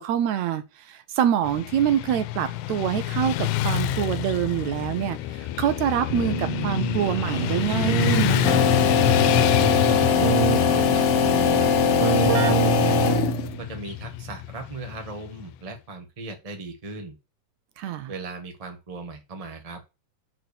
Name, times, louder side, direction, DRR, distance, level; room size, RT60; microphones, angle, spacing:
voice 1, 0.0-8.7 17.8-18.1, right 10 dB, 75° right, 1.9 m, -26 dB
Motorcycle / Traffic noise roadway noise, 1.4-15.6, left 12 dB, 85° left, 2.1 m, -28 dB
Keyboard (musical), 6.1-13.7, right 10 dB, 90° right, 2.4 m, -27 dB
sound 1, 8.4-13.6, left 8 dB, 70° left, 1.4 m, -21 dB
voice 2, 9.9-11.7 12.0-12.9 13.6-17.2 18.1-19.8, right 3 dB, 50° right, 0.4 m, -37 dB
6.2 x 4.6 x 6.6 m
omnidirectional pair, 3.6 m